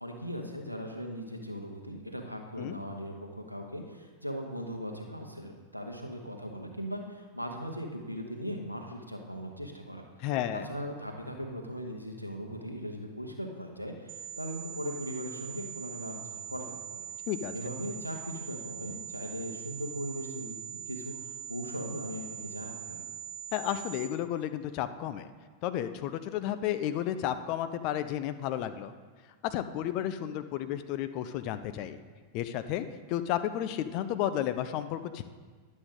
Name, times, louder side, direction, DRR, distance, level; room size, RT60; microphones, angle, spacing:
voice 1, 0.0-10.0 10.5-17.0 17.5-23.1, equal, 90° right, 2 dB, 1.0 m, -39 dB
voice 2, 10.2-10.7 17.3-17.5 23.5-25.3 25.6-28.9 29.4-32.0 32.3-35.2, left 11 dB, 45° left, 10 dB, 0.5 m, -32 dB
sound 1, 14.1-24.1, right 8 dB, 35° right, 0.7 m, -42 dB
10.5 x 7.4 x 3.7 m, 1.5 s
figure-of-eight pair, 90°, 0 cm